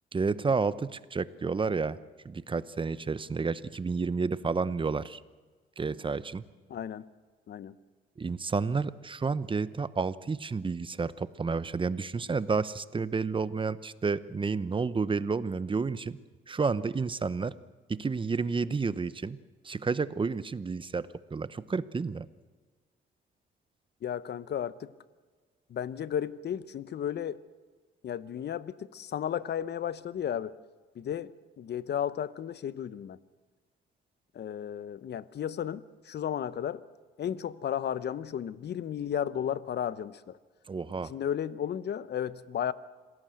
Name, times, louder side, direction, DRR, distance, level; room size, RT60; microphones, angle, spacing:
voice 1, 0.1-2.0 2.2-5.2 5.8-6.4 8.2-16.2 16.5-17.5 17.9-19.4 19.6-22.3 40.7-41.1, right 4 dB, 25° right, 0.8 m, -30 dB
voice 2, 6.7-7.0 7.5-7.7 24.0-24.9 25.7-27.4 28.0-30.6 30.9-33.2 34.3-36.8 37.2-40.4 41.0-42.7, left 9 dB, 55° left, 0.9 m, -34 dB
26.5 x 17.0 x 7.8 m
cardioid pair, 90°, 20 cm